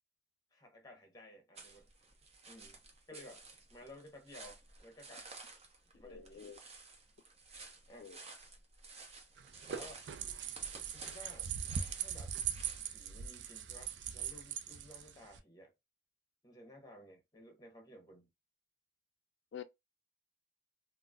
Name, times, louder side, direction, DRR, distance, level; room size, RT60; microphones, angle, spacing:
voice 1, 0.5-1.9 2.4-2.8 3.1-3.4 3.7-5.3 5.9-6.4 7.9-8.1 9.7-10.1 10.9-11.5 12.0-12.5 12.9-15.7 16.4-18.3, left 1 dB, 20° left, 0.9 m, -55 dB
sound 1, 1.6-12.9, right 3 dB, 35° right, 0.7 m, -54 dB
voice 2, 6.0-6.6 8.0-8.2 19.5-19.6, left 8 dB, 90° left, 0.3 m, -48 dB
sound 2, 9.4-15.4, right 8 dB, 85° right, 0.4 m, -41 dB
3.8 x 2.0 x 2.3 m
head